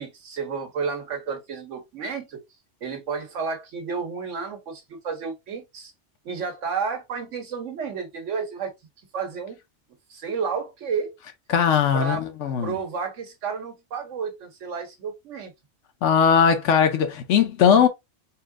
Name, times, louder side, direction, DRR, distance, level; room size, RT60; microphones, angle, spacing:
voice 1, 0.0-2.4 2.8-5.9 6.2-8.7 9.1-9.6 10.1-11.1 11.9-15.5, right 5 dB, 85° right, 1.4 m, -31 dB
voice 2, 11.5-12.7 16.0-17.9, left 7 dB, 85° left, 1.1 m, -19 dB
4.3 x 3.7 x 2.2 m
omnidirectional pair, 1.2 m